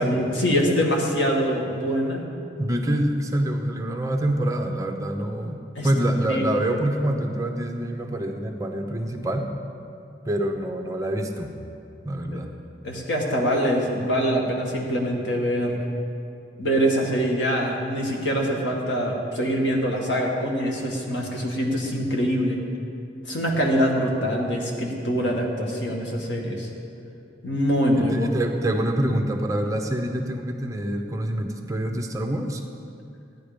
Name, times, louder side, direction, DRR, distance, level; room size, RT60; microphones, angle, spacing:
voice 1, 0.0-2.2 5.8-5.9 6.3-6.6 12.8-15.8 16.6-22.6 23.3-26.7 27.4-28.3, equal, 90° left, -1 dB, 2.1 m, -24 dB
voice 2, 2.6-9.5 10.2-11.5 12.0-12.5 27.9-32.6, right 1 dB, 20° right, 3 dB, 0.8 m, -26 dB
15.5 x 10.5 x 5.2 m, 2.5 s
head